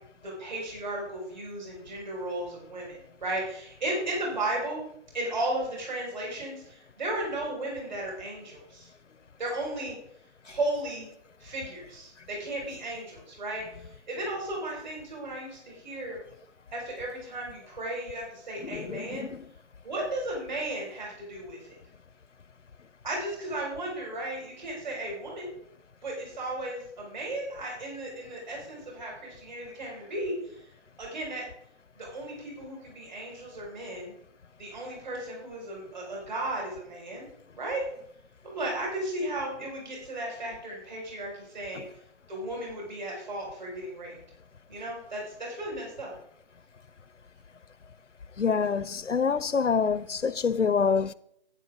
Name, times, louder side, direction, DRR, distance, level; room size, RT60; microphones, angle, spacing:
voice 1, 0.2-4.8 5.1-8.9 9.4-10.0 10.4-11.1 11.4-16.2 16.7-19.3 19.8-21.8 23.0-25.5 26.0-30.6 31.0-31.4 32.0-34.1 34.6-37.3 37.5-37.8 38.4-41.8 42.3-44.2 44.7-46.1, right 1 dB, 40° right, 5.5 m, -35 dB
voice 2, 18.6-19.4 41.7-41.8 48.4-51.1, left 5 dB, 80° left, 0.7 m, -27 dB
11.5 x 9.8 x 3.9 m
figure-of-eight pair, 165°, 36 cm